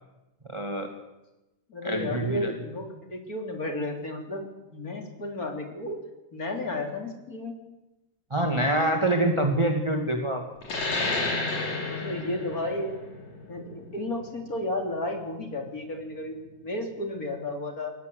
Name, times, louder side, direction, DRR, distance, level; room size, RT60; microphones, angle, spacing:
voice 1, 0.5-0.9 1.8-2.5 8.3-10.5, right 1 dB, 15° right, 4 dB, 1.4 m, -25 dB
voice 2, 1.7-4.4 4.7-6.0 6.3-7.6 11.9-13.1 13.5-16.4 16.6-17.9, left 1 dB, 30° left, 3 dB, 3.6 m, -33 dB
sound 1, 10.6-15.8, left 3 dB, 65° left, 4.9 m, -32 dB
22.5 x 19.0 x 8.1 m, 1.0 s
omnidirectional pair, 3.4 m